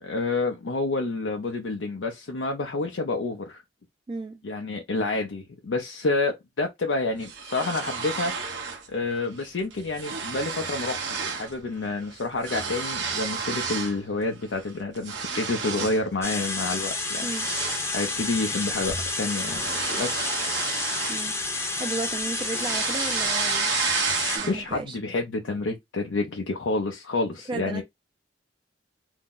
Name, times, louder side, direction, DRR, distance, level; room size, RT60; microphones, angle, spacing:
voice 1, 0.0-3.6 4.4-8.5 8.9-17.3 17.9-19.6 20.0-20.2 24.5-27.8, left 3 dB, 90° left, 0.5 m, -29 dB
voice 2, 4.1-4.4 17.2-17.5 21.1-21.4 21.7-23.7 24.3-25.0 27.5-27.8, right 3 dB, 25° right, 0.3 m, -34 dB
sound 1, 7.2-8.9 9.2-9.5 9.7-11.5 11.8-14.0 14.4-16.1 16.5-16.7 17.2-21.7 22.0-24.7, right 5 dB, 70° right, 0.8 m, -31 dB
sound 2, 16.2-24.4, left 3 dB, 15° left, 0.6 m, -30 dB
2.6 x 2.1 x 3.6 m
head